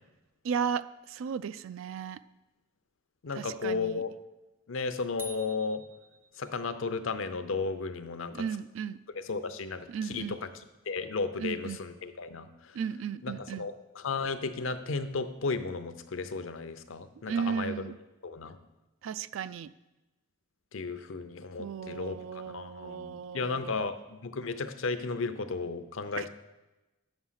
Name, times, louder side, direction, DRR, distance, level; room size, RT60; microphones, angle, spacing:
voice 1, 0.4-2.2 3.3-4.0 8.3-9.0 9.9-10.4 11.4-11.8 12.7-13.7 17.3-18.0 19.0-19.7 21.6-23.8 26.2-26.3, right 7 dB, 70° right, 15 dB, 0.3 m, -35 dB
voice 2, 3.2-4.1 4.7-5.8 6.4-8.4 9.1-10.5 10.9-12.7 13.2-17.7 18.2-18.5 20.7-26.3, left 4 dB, 70° left, 10 dB, 0.6 m, -34 dB
sound 1, 5.2-6.8, right 1 dB, 10° right, 0.5 m, -47 dB
6.9 x 6.1 x 5.6 m, 1.0 s
head